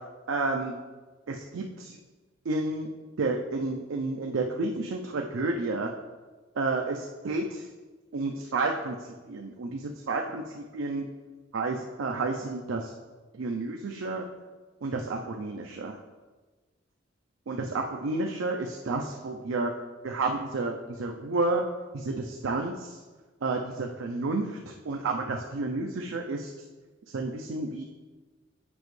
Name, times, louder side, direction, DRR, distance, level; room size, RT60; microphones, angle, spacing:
voice 1, 0.3-0.8 1.3-2.0 2.5-2.9 3.2-5.9 6.6-7.7 8.1-9.0 9.3-11.1 11.5-12.9 13.3-14.2 14.8-16.0 17.5-19.7 20.0-21.6 21.9-23.0 23.4-26.5 27.1-27.8, right 3 dB, 80° right, 2 dB, 0.5 m, -31 dB
7.0 x 5.2 x 3.2 m, 1.3 s
head